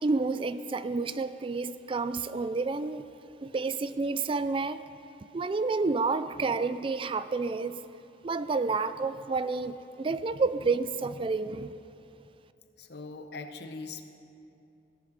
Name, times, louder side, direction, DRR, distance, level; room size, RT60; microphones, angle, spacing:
voice 1, 0.0-3.0 3.4-4.8 5.3-7.8 8.2-11.8, right 4 dB, 30° right, 13 dB, 0.4 m, -30 dB
voice 2, 12.8-14.0, left 3 dB, 65° left, 7 dB, 0.9 m, -41 dB
17.0 x 10.0 x 5.9 m, 2.7 s
head